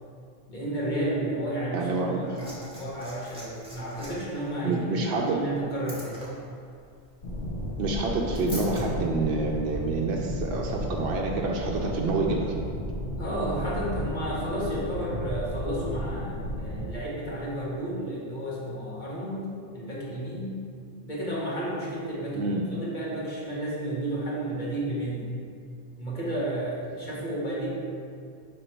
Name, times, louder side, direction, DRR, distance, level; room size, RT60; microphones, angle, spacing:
voice 1, 0.5-6.2 13.2-20.6 21.0-25.3 26.0-27.7, right 1 dB, 40° left, -7 dB, 1.5 m, -32 dB
voice 2, 1.7-2.2 4.6-5.4 7.8-12.5 22.3-22.6, right 3 dB, 65° right, -1 dB, 0.8 m, -27 dB
Liquid, 2.0-8.8 9.9-10.0, equal, 5° right, 1.4 m, -45 dB
sound 1, 7.2-16.9, equal, 60° left, 1.0 m, -33 dB
5.4 x 3.9 x 4.5 m, 2.4 s
omnidirectional pair, 1.2 m